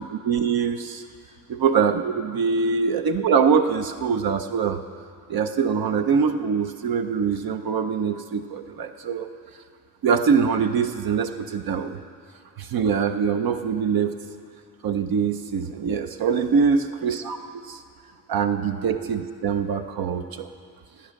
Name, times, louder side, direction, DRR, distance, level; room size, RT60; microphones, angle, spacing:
voice 1, 0.3-1.0 1.6-4.8 5.3-9.3 10.0-12.0 12.6-14.1 14.8-17.8 18.3-20.5, right 6 dB, 85° right, 7 dB, 0.7 m, -23 dB
15.5 x 9.7 x 6.4 m, 2.2 s
wide cardioid pair, 90°, 35 cm